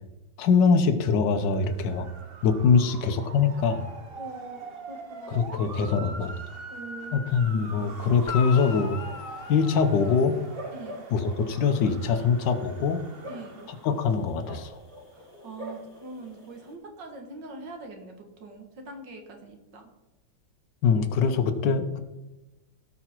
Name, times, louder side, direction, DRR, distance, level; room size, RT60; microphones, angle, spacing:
voice 1, 0.4-2.1 2.4-3.8 5.3-6.3 7.1-9.0 9.5-10.4 11.1-13.0 13.8-14.7 20.8-22.0, left 5 dB, 75° left, 7 dB, 1.6 m, -23 dB
Motor vehicle (road) / Siren, 1.4-14.1, right 3 dB, 45° right, 0.8 m, -43 dB
voice 2, 4.1-5.7 6.7-7.6 10.7-11.0 13.3-13.7 15.1-18.2 18.4-19.9, right 2 dB, 75° right, 4 dB, 2.3 m, -43 dB
sound 1, 7.3-16.7, equal, 15° right, 4.8 m, -46 dB
Guitar, 8.3-10.8 14.6-14.7, left 7 dB, 60° left, 1.0 m, -39 dB
17.5 x 5.9 x 4.5 m, 1.1 s
omnidirectional pair, 1.9 m